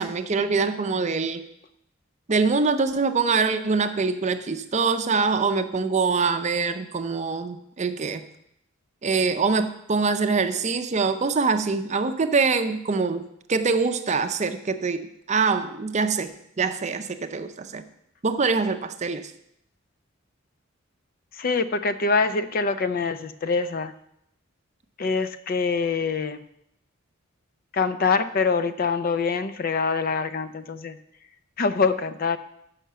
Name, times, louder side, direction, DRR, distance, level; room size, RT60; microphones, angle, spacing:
voice 1, 0.0-1.4 2.3-8.2 9.0-16.3 16.6-17.8 18.2-19.3, right 4 dB, 35° right, 9 dB, 0.5 m, -24 dB
voice 2, 21.4-23.9 25.0-26.4 27.7-31.0 31.6-32.4, left 4 dB, 45° left, 12 dB, 0.4 m, -24 dB
6.8 x 5.7 x 7.3 m, 0.78 s
head